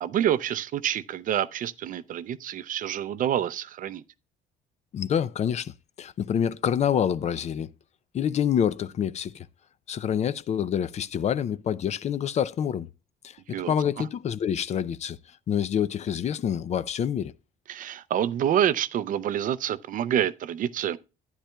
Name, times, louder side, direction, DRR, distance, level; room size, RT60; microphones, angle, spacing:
voice 1, 0.0-4.0 13.5-14.1 17.7-21.0, right 10 dB, 55° right, 0.5 m, -27 dB
voice 2, 4.9-5.7 6.0-7.7 8.1-9.5 9.9-12.9 13.2-15.2 15.5-17.3, left 8 dB, 40° left, 0.4 m, -27 dB
11.5 x 10.0 x 2.2 m
cardioid pair, 110°, 17 cm